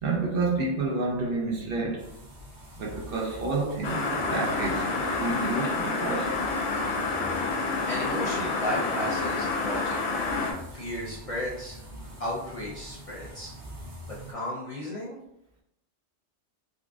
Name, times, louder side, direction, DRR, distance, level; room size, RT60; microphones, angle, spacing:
voice 1, 0.0-2.1 2.8-6.4, right 3 dB, 60° right, 0.8 m, -29 dB
sound 1, 2.0-14.3, equal, 75° right, 1.3 m, -44 dB
sound 2, 3.8-10.5, left 3 dB, 70° left, 0.8 m, -28 dB
voice 2, 7.9-10.3 10.7-11.8 12.2-13.5 14.3-15.2, left 1 dB, 40° left, 0.6 m, -34 dB
3.8 x 2.4 x 2.4 m
omnidirectional pair, 1.2 m